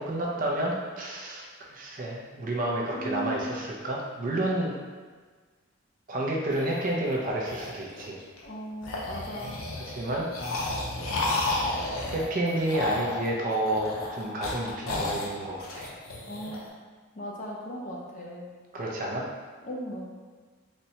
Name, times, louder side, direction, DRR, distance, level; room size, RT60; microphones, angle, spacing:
voice 1, 0.0-4.7 6.1-8.2 9.9-10.3 12.1-15.9 18.7-19.3, right 1 dB, 40° right, -2 dB, 0.4 m, -30 dB
voice 2, 2.9-3.6 8.4-9.7 16.3-16.7 17.1-18.5 19.6-20.1, right 1 dB, 35° left, -3 dB, 0.5 m, -37 dB
sound 1, 6.5-8.4 8.8-16.6, left 2 dB, 85° left, 0.5 m, -32 dB
4.0 x 2.2 x 2.8 m, 1.5 s
head